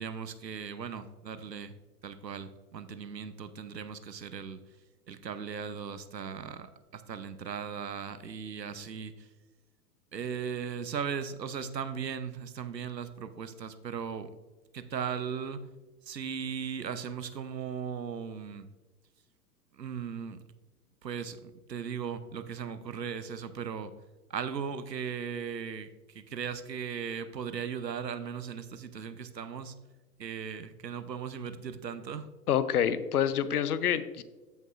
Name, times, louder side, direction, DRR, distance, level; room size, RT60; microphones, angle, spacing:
voice 1, 0.0-1.7 2.0-4.6 5.1-9.3 10.1-14.3 14.7-15.6 16.0-18.7 19.7-20.4 21.0-23.9 24.3-29.7 30.2-32.3, right 7 dB, 85° right, 12 dB, 0.8 m, -37 dB
voice 2, 32.5-34.2, left 9 dB, 65° left, 14 dB, 0.7 m, -27 dB
13.5 x 5.4 x 2.4 m, 1.2 s
figure-of-eight pair, 105°, 49 cm